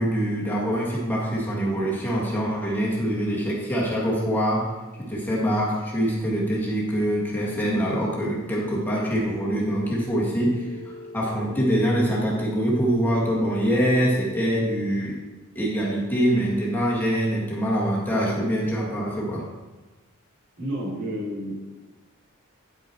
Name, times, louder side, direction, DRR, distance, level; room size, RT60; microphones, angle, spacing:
voice 1, 0.0-4.7 4.9-15.2 15.6-19.4, equal, 10° left, -5 dB, 1.8 m, -24 dB
Telephone, 9.7-14.7, left 3 dB, 50° left, 1.3 m, -40 dB
voice 2, 20.6-21.6, equal, 75° right, -5 dB, 3.3 m, -30 dB
9.7 x 6.1 x 4.5 m, 1.2 s
head